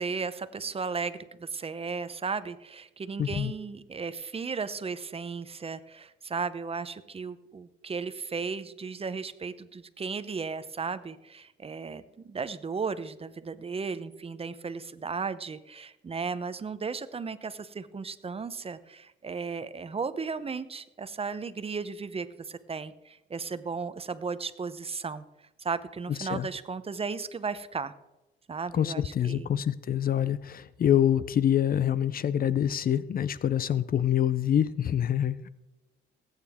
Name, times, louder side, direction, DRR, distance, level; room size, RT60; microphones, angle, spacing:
voice 1, 0.0-25.2 25.6-27.9 28.5-29.5, right 5 dB, 30° right, 13 dB, 0.7 m, -35 dB
voice 2, 3.2-3.5 26.2-26.5 28.7-35.5, left 10 dB, 50° left, 17 dB, 0.5 m, -26 dB
19.0 x 9.1 x 3.6 m, 0.99 s
cardioid pair, 90°, 20 cm